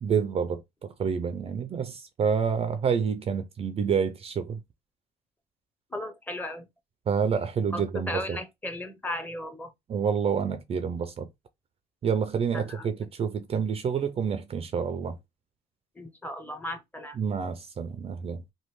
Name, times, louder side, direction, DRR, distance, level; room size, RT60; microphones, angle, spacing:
voice 1, 0.0-4.6 7.1-8.4 9.9-11.3 12.0-15.2 17.1-18.4, right 6 dB, 35° right, 0.4 m, -28 dB
voice 2, 5.9-6.7 7.7-9.7 12.5-12.9 16.0-17.2, left 1 dB, 10° left, 0.7 m, -36 dB
3.1 x 2.2 x 3.1 m
cardioid pair, 110°, 17 cm